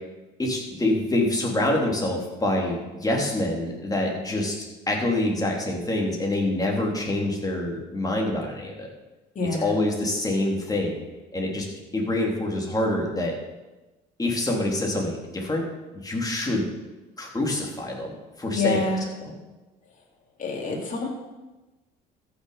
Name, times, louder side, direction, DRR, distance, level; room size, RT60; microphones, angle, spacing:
voice 1, 0.4-8.9 9.6-11.0 11.3-11.7 11.9-13.3 14.2-15.7 16.0-16.6 17.2-18.9 19.2-19.4, left 1 dB, 20° left, -1 dB, 3.3 m, -26 dB
voice 2, 9.3-9.7 18.5-19.0 20.4-21.1, left 3 dB, 45° left, -1 dB, 3.2 m, -26 dB
14.0 x 6.5 x 5.7 m, 1.1 s
supercardioid pair, 90°, 19 cm